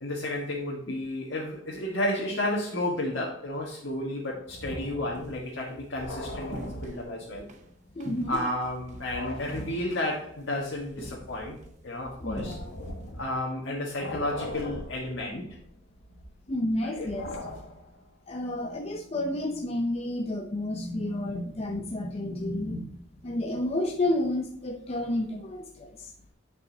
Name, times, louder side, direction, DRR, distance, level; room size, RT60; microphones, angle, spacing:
voice 1, 0.0-7.5 8.3-11.6 11.8-12.6 13.2-15.6 16.8-17.1, left 1 dB, 70° left, -4 dB, 1.5 m, -32 dB
sound 1, 4.5-7.6 7.9-13.6 13.9-18.0, left 1 dB, 85° left, 1.6 m, -41 dB
sound 2, 5.1-5.5 6.5-7.0 7.5-7.6 8.0-9.0 9.5-10.2 10.5-10.7 11.0-11.7 12.4-12.9, equal, 35° right, 0.8 m, -43 dB
voice 2, 7.9-8.4 12.2-12.7 16.5-17.3 18.3-26.1, left 1 dB, 30° left, 2 dB, 0.6 m, -31 dB
9.6 x 5.5 x 2.8 m, 0.68 s
head